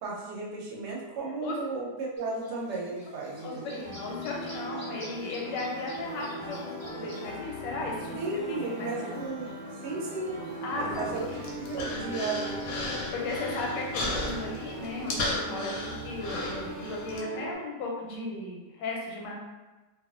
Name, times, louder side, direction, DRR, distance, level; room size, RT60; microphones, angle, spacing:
voice 1, 0.0-3.8 8.2-9.5 9.8-10.4 10.8-11.3 11.6-12.5, right 3 dB, 85° right, -3 dB, 1.2 m, -34 dB
Bird / Buzz, 2.2-15.1, right 1 dB, 20° left, 0.5 m, -46 dB
voice 2, 3.4-9.2 10.6-11.4 13.1-19.4, left 2 dB, 90° left, -1 dB, 1.3 m, -36 dB
Piano, 3.8-17.6, right 1 dB, 30° right, 0.8 m, -40 dB
Human voice, 10.9-17.2, left 2 dB, 70° left, 0.9 m, -35 dB
2.8 x 2.3 x 2.3 m, 1.2 s
omnidirectional pair, 1.8 m